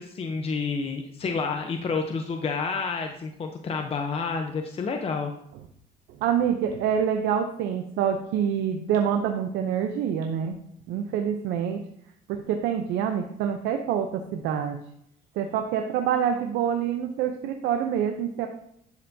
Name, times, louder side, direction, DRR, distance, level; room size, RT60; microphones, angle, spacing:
voice 1, 0.0-5.3, left 4 dB, 35° left, 4 dB, 0.8 m, -29 dB
voice 2, 6.2-10.6 10.9-11.8 12.3-14.8 15.4-18.5, right 8 dB, 85° right, 5 dB, 0.7 m, -26 dB
10.5 x 6.8 x 2.8 m, 0.73 s
cardioid pair, 110°, 17 cm